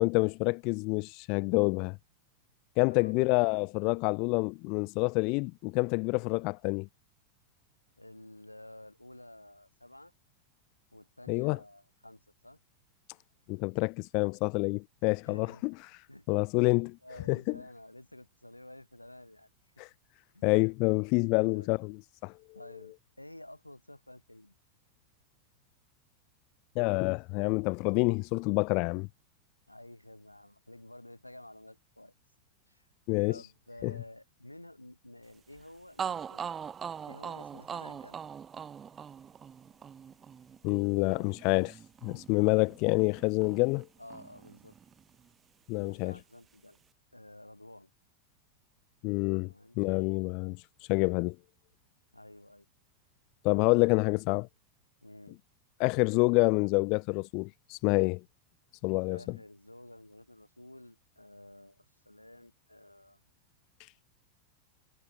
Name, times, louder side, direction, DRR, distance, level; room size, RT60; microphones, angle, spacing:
voice 1, 0.0-2.0 2.8-6.9 11.3-11.6 13.5-16.0 16.3-17.0 17.3-17.6 19.8-19.9 20.4-22.4 26.8-29.1 33.1-33.4 33.8-33.9 40.6-43.9 45.7-46.2 49.0-49.5 49.8-51.4 53.4-54.5 55.8-58.2 58.8-59.2 63.8-63.9, left 30 dB, 45° left, 0.4 m, -28 dB
voice 2, 2.9-3.2 8.0-10.1 10.9-12.6 15.3-15.6 16.1-16.5 17.0-19.5 20.3-20.5 21.3-21.9 22.5-24.5 29.7-32.1 32.7-32.9 33.3-36.5 37.1-38.2 44.0-44.8 45.7-46.8 47.1-47.9 49.4-49.8 52.1-52.7 55.0-55.4 59.1-63.2, left 1 dB, 85° left, 7.7 m, -51 dB
sound 1, 35.6-35.7 36.0-43.9 44.1-45.3, right 7 dB, 20° right, 2.7 m, -42 dB
figure-of-eight pair, 90°, 0 cm